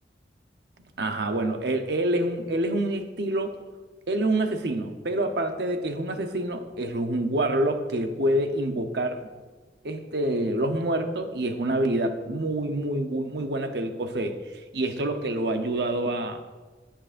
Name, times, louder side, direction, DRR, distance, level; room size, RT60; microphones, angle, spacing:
voice 1, 1.0-3.5 4.1-9.2 9.8-14.4 14.7-16.4, right 1 dB, 65° right, 6 dB, 0.9 m, -27 dB
11.5 x 10.0 x 2.6 m, 1.3 s
head